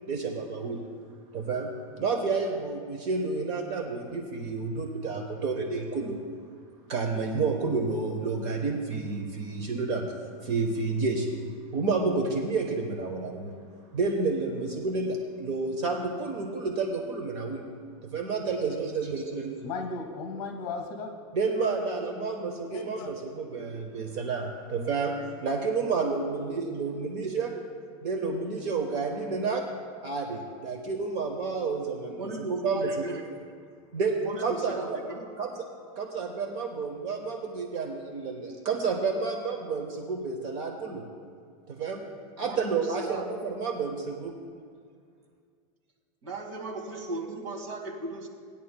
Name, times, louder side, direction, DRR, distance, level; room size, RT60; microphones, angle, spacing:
voice 1, 0.1-0.8 1.3-6.2 6.9-10.1 10.4-11.3 11.7-13.6 13.9-17.7 18.0-19.5 21.3-25.2 25.4-27.5 28.0-29.6 30.0-33.2 33.9-35.0 35.4-35.5 35.9-41.0 41.7-42.0 42.4-44.3, right 4 dB, 35° right, 2 dB, 1.0 m, -30 dB
voice 2, 18.5-19.0 19.6-21.2 22.7-23.3, left 4 dB, 40° left, 5 dB, 1.5 m, -36 dB
voice 3, 32.2-33.2 34.2-35.3 42.4-43.3 46.2-48.3, right 3 dB, 55° right, 1 dB, 2.1 m, -36 dB
18.5 x 10.0 x 2.2 m, 2.1 s
supercardioid pair, 165°, 18 cm